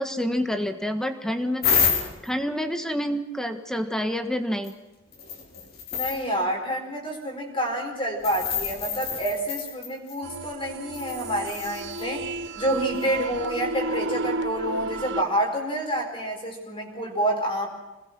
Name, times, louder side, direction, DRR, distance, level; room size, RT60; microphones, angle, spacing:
voice 1, 0.0-1.7 2.2-4.7, equal, 5° left, 7 dB, 1.6 m, -28 dB
sound 1, 1.6-2.3 4.6-4.7 5.1-6.2 8.2-10.2 10.9-12.0 13.0-13.1, left 6 dB, 50° left, 4.4 m, -28 dB
voice 2, 5.9-12.3 12.5-17.7, right 1 dB, 25° left, 0 dB, 4.7 m, -28 dB
sound 2, 10.2-15.2, right 2 dB, 65° right, 1.1 m, -32 dB
26.5 x 20.5 x 6.1 m, 1.1 s
head